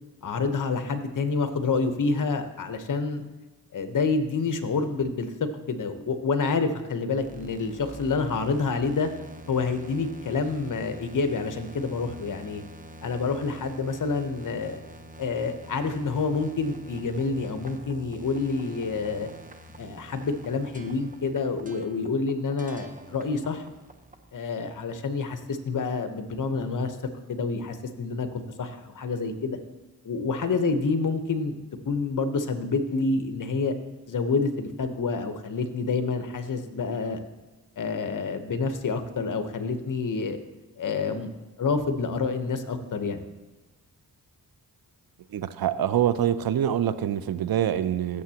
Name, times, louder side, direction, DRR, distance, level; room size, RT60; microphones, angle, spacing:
voice 1, 0.2-3.2 3.7-5.3 5.7-9.1 9.5-12.6 13.0-14.8 15.2-19.3 19.8-23.6 24.3-27.0 27.3-29.6 30.0-31.6 31.8-33.7 34.1-37.2 37.8-40.4 40.8-41.3 41.6-43.3, left 4 dB, 55° left, 8 dB, 1.0 m, -28 dB
sound 1, 7.2-24.3, right 1 dB, 20° right, 0.9 m, -46 dB
voice 2, 45.3-48.2, right 10 dB, 75° right, 13 dB, 0.6 m, -25 dB
15.0 x 6.9 x 2.9 m, 1.2 s
cardioid pair, 70°, 36 cm